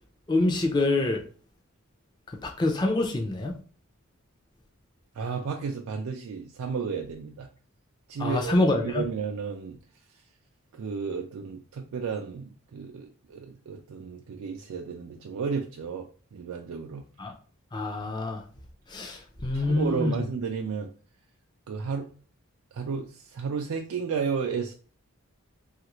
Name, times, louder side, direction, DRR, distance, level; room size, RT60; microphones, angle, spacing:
voice 1, 0.3-1.2 2.4-3.5 8.2-9.0 17.2-17.3 17.7-18.4 18.9-20.2, left 2 dB, 20° left, 0.4 m, -26 dB
voice 2, 5.2-7.5 8.1-9.8 10.7-17.1 19.5-20.9 21.7-22.1 22.7-24.7, right 5 dB, 80° right, 0.4 m, -33 dB
3.1 x 2.4 x 3.0 m
head